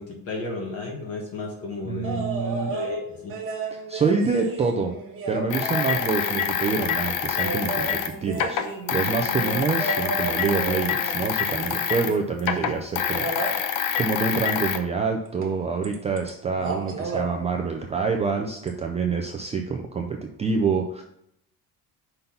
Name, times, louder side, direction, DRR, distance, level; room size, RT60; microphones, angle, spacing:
voice 1, 0.0-2.2 2.7-3.3, left 3 dB, 40° left, -2 dB, 1.5 m, -33 dB
voice 2, 1.9-2.7 3.7-4.9 5.3-20.1 20.4-21.0, right 4 dB, 20° right, 3 dB, 0.4 m, -27 dB
sound 1, 2.0-2.9 3.3-6.8 7.3-12.2 13.1-13.6 15.4-15.5 15.8-16.3 16.6-17.3 18.7-18.8, right 3 dB, 35° right, 1.3 m, -33 dB
sound 2, 5.5-12.1 12.4-14.8, left 8 dB, 65° left, 0.8 m, -26 dB
5.5 x 4.0 x 5.7 m, 0.76 s
cardioid pair, 150°, 35 cm